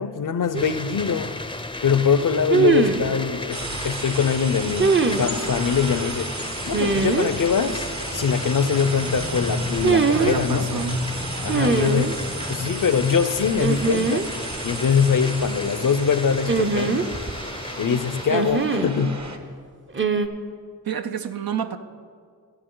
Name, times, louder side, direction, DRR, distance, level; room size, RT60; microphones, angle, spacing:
voice 1, 0.0-1.3 1.8-6.3 6.7-10.7 11.4-12.2 12.5-14.3 14.6-17.1 17.8-19.2, left 6 dB, 60° left, 13 dB, 0.6 m, -23 dB
sound 1, 0.5-18.2, left 2 dB, 15° left, 0.5 m, -33 dB
sound 2, 0.5-0.6 2.5-3.1 4.8-5.3 6.7-7.3 9.8-10.4 11.5-12.1 13.6-14.2 14.5-14.6 16.5-17.4 18.3-18.9 19.9-20.3, right 5 dB, 35° right, 0.7 m, -21 dB
sound 3, 3.5-19.4, right 3 dB, 50° right, 1.1 m, -34 dB
voice 2, 10.1-11.1 11.5-12.1 20.2-20.3 20.9-21.8, right 7 dB, 75° right, 9 dB, 0.6 m, -29 dB
14.0 x 9.5 x 3.8 m, 2.1 s
cardioid pair, 40°, 36 cm